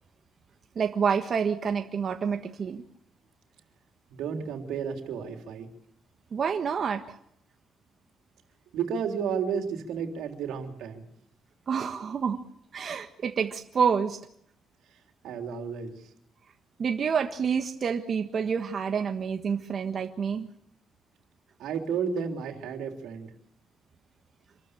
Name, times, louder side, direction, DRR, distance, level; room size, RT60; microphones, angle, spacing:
voice 1, 0.7-2.8 6.3-7.2 11.7-12.4 12.7-14.2 16.8-20.5, right 6 dB, 50° right, 5 dB, 1.5 m, -28 dB
voice 2, 4.1-5.7 8.7-11.0 15.2-16.0 21.6-23.3, right 6 dB, 85° right, 4 dB, 3.5 m, -32 dB
26.5 x 13.5 x 8.6 m, 0.72 s
cardioid pair, 90°, 0 cm